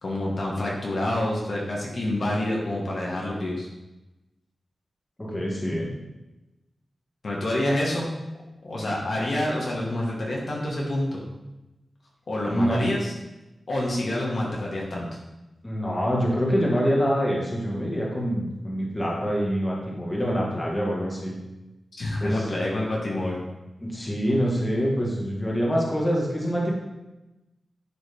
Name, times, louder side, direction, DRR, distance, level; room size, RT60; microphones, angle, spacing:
voice 1, 0.0-3.7 7.2-8.1 8.6-11.2 12.3-13.1 13.7-15.1 21.9-23.4, left 1 dB, 60° left, -3 dB, 1.6 m, -27 dB
voice 2, 5.2-5.9 12.5-12.8 15.6-21.4 22.2-22.5 23.8-26.7, equal, 20° left, -3 dB, 1.8 m, -25 dB
11.0 x 4.0 x 3.5 m, 1.0 s
wide cardioid pair, 100°, 0 cm